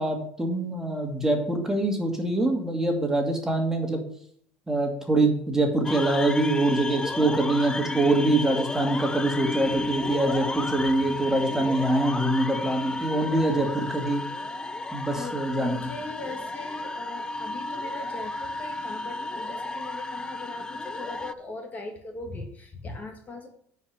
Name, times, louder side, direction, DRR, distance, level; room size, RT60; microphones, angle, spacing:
voice 1, 0.0-4.0 4.7-14.2 14.9-15.8, right 2 dB, 10° right, 2 dB, 2.4 m, -24 dB
sound 1, 5.8-21.3, left 2 dB, 15° left, 0.4 m, -33 dB
voice 2, 15.1-23.5, left 2 dB, 30° left, 3 dB, 1.9 m, -40 dB
9.5 x 5.3 x 6.6 m, 0.63 s
supercardioid pair, 105°, 5 cm